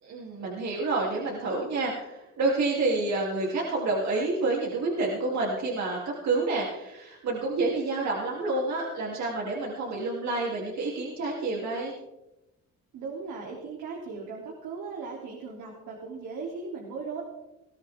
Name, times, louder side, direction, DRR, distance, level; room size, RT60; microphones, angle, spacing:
voice 1, 0.0-11.9, right 3 dB, 65° right, -3 dB, 3.3 m, -29 dB
voice 2, 12.9-17.2, right 4 dB, 85° right, -2 dB, 3.3 m, -38 dB
20.5 x 13.5 x 3.7 m, 0.96 s
cardioid pair, 90°, 30 cm